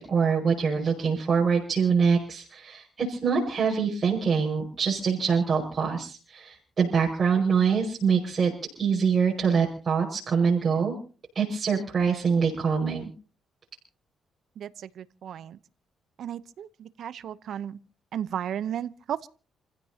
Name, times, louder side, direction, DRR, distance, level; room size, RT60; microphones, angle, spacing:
voice 1, 0.0-8.5 8.8-10.9 11.3-13.1, right 6 dB, 40° right, 5.7 m, -24 dB
voice 2, 16.2-16.7 17.0-17.8 18.1-19.3, right 9 dB, 70° right, 0.8 m, -33 dB
29.0 x 15.5 x 2.9 m
cardioid pair, 90°, 0 cm